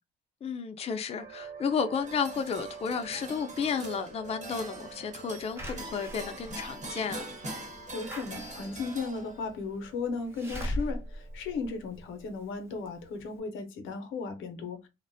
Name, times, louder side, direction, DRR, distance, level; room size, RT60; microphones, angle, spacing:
voice 1, 0.4-7.3, left 6 dB, 30° left, 0.4 m, -32 dB
sound 1, 1.2-12.5, right 7 dB, 65° right, 1.0 m, -50 dB
sound 2, 1.9-9.6, right 2 dB, 35° right, 1.0 m, -43 dB
Slam / Alarm, 5.6-12.4 12.8-12.9 13.2-13.3, left 1 dB, 10° right, 0.7 m, -40 dB
voice 2, 7.9-14.9, left 4 dB, 80° left, 0.6 m, -36 dB
2.5 x 2.1 x 2.6 m
cardioid pair, 90°, 20 cm